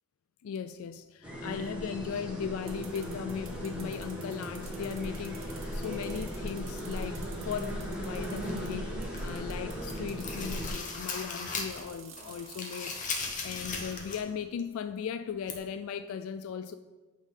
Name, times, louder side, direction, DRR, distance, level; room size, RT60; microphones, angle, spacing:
voice 1, 0.4-13.0 13.4-16.8, left 7 dB, 90° left, 0.3 m, -37 dB
sound 1, 1.2-10.7, equal, 5° right, 1.3 m, -37 dB
sound 2, 2.7-8.6 9.0-10.3 11.1-11.2 11.5-12.9, right 7 dB, 70° right, 1.1 m, -50 dB
sound 3, 8.4-9.5 9.8-11.9 12.2-14.3 14.6-14.7 15.5-15.6, left 4 dB, 40° left, 1.0 m, -38 dB
8.9 x 3.8 x 5.4 m
head